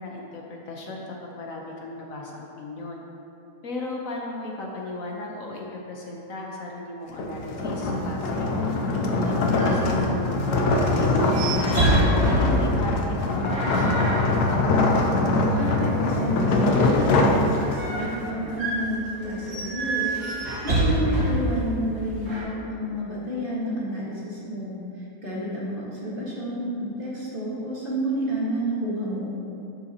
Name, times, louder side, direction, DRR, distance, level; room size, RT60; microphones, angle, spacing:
voice 1, 0.0-3.0 3.6-8.7 9.2-11.8 12.2-14.2, left 2 dB, 60° left, -1 dB, 1.2 m, -36 dB
sound 1, 7.1-18.1, left 2 dB, 80° left, 1.3 m, -23 dB
sound 2, 9.2-22.4, right 1 dB, 75° right, 2.7 m, -29 dB
voice 2, 15.5-20.1 20.6-24.7 25.2-29.4, equal, 35° right, -7 dB, 1.8 m, -30 dB
11.5 x 6.9 x 2.9 m, 2.7 s
omnidirectional pair, 1.7 m